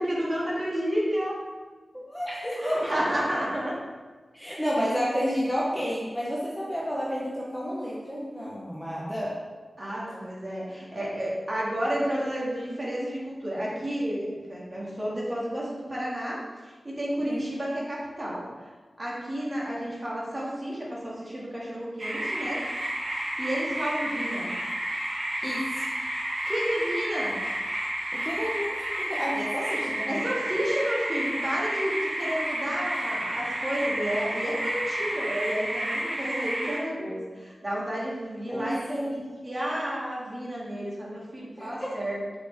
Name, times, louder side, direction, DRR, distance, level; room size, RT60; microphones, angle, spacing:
voice 1, 0.0-1.4 2.6-3.8 9.8-18.5 19.0-22.7 23.4-24.5 26.5-27.4 30.1-42.2, equal, 30° right, -6 dB, 2.4 m, -31 dB
voice 2, 1.9-2.7 4.3-9.4 17.2-17.4 25.4-25.9 28.1-30.3 38.5-39.1 41.6-41.9, equal, 5° left, -6 dB, 1.3 m, -31 dB
sound 1, 22.0-36.8, right 1 dB, 75° right, 2.0 m, -31 dB
7.7 x 6.3 x 3.8 m, 1.4 s
wide cardioid pair, 95°, 0 cm